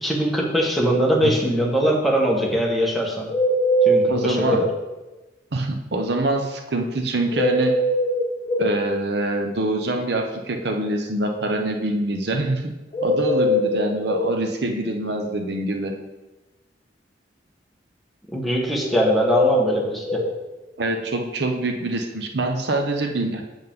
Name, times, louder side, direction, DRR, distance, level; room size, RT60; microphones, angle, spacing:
voice 1, 0.0-3.3 3.8-4.6 18.3-20.0, equal, ahead, -3 dB, 1.4 m, -21 dB
sound 1, 3.3-4.7 7.3-8.7 12.9-14.3 18.9-20.3, equal, 35° left, 1.4 m, -21 dB
voice 2, 4.1-4.6 5.5-7.8 8.6-15.9 20.8-23.4, right 2 dB, 70° right, 4 dB, 0.9 m, -25 dB
7.8 x 7.3 x 3.7 m, 1.1 s
head